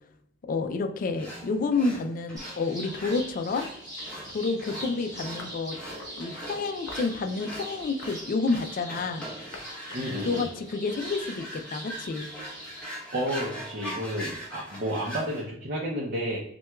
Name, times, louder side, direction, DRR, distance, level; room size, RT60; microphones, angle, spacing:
voice 1, 0.5-3.7 4.3-5.8 6.2-9.3 10.2-12.3, left 3 dB, 45° left, 8 dB, 0.4 m, -29 dB
sound 1, 1.2-15.4, right 1 dB, 5° left, 1.0 m, -41 dB
sound 2, 2.4-12.8, equal, 20° right, 1.3 m, -42 dB
sound 3, 5.4-6.3 6.9-7.2 7.8-8.9 9.5-9.7 9.9-11.3, left 2 dB, 70° left, 0.7 m, -46 dB
voice 2, 9.9-10.4 13.1-16.4, equal, 45° right, -3 dB, 0.6 m, -31 dB
5.8 x 2.3 x 2.3 m, 0.73 s
head